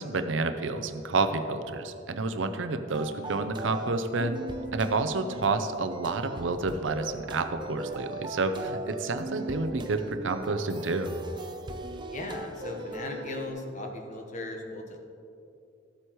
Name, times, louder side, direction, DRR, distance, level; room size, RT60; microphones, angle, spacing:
voice 1, 0.0-4.4 4.7-11.1, right 3 dB, 75° right, 8 dB, 0.6 m, -29 dB
sound 1, 2.9-13.5, right 1 dB, 25° right, 0.6 m, -39 dB
voice 2, 12.1-15.0, left 2 dB, 40° left, 2 dB, 1.1 m, -38 dB
14.0 x 7.8 x 3.1 m, 2.6 s
head